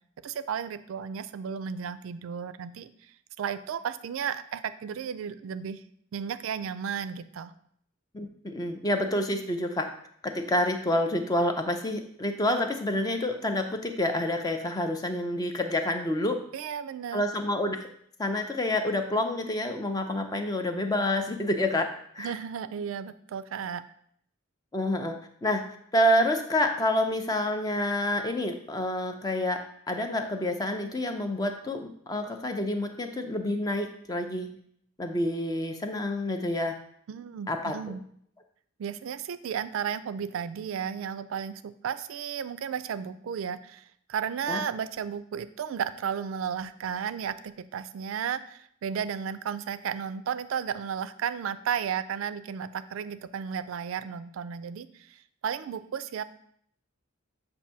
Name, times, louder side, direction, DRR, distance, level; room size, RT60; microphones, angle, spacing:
voice 1, 0.2-2.9 3.4-5.8 6.1-7.5 16.5-17.2 22.2-23.8 37.1-38.0 38.8-56.2, right 7 dB, 75° right, 13 dB, 0.3 m, -34 dB
voice 2, 8.1-9.9 10.2-16.4 17.1-17.8 18.2-22.3 24.7-25.1 25.4-34.5 35.0-36.7 37.5-37.7 44.5-44.6, left 1 dB, 20° left, 5 dB, 0.5 m, -28 dB
7.2 x 2.6 x 5.6 m, 0.67 s
head